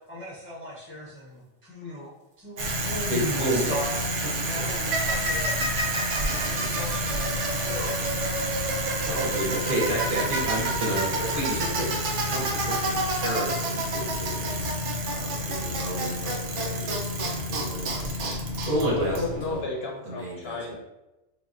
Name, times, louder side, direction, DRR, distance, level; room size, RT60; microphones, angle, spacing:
voice 1, 0.1-2.1 2.4-4.1 4.4-5.6 6.5-8.1, equal, 15° left, -7 dB, 0.5 m, -36 dB
Bicycle, 2.6-19.6, right 1 dB, 85° right, 0.9 m, -28 dB
voice 2, 3.1-3.7 6.1-6.7 8.6-11.9 12.2-14.7 15.1-18.3 18.7-19.6 20.0-20.6, right 1 dB, 50° right, -4 dB, 0.9 m, -31 dB
voice 3, 19.0-20.8, left 3 dB, 65° left, -1 dB, 0.8 m, -32 dB
3.5 x 2.1 x 2.5 m, 0.98 s
omnidirectional pair, 1.2 m